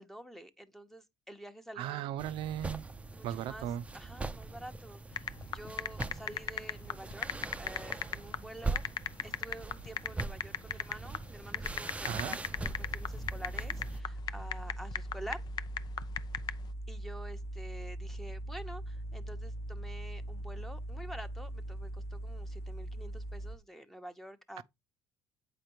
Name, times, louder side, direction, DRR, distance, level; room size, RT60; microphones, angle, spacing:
voice 1, 0.0-2.1 3.1-3.7 3.9-7.3 7.6-8.8 9.2-15.4 16.9-24.6, right 1 dB, 5° left, 0.9 m, -48 dB
voice 2, 1.8-2.8 3.2-3.8 12.0-12.4 24.6-24.7, right 11 dB, 75° right, 0.6 m, -36 dB
sound 1, 2.2-14.0, right 3 dB, 15° right, 0.6 m, -42 dB
sound 2, 5.1-16.7, left 9 dB, 50° left, 0.6 m, -36 dB
sound 3, 12.6-23.6, right 1 dB, 30° left, 0.9 m, -41 dB
8.5 x 5.1 x 3.0 m
supercardioid pair, 85°, 9 cm